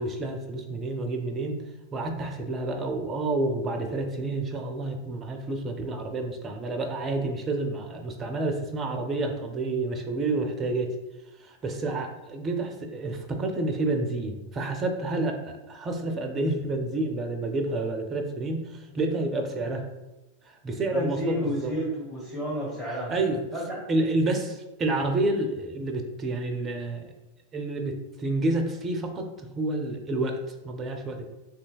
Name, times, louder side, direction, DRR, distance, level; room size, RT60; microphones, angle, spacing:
voice 1, 0.0-1.6 1.9-10.9 11.4-19.8 20.6-21.7 22.9-23.4 23.9-27.1 27.5-31.3, right 2 dB, 25° right, 4 dB, 0.4 m, -29 dB
voice 2, 20.9-23.1 23.5-23.8, equal, 10° left, -6 dB, 1.0 m, -31 dB
3.2 x 2.7 x 2.2 m, 1.0 s
figure-of-eight pair, 90°, 0 cm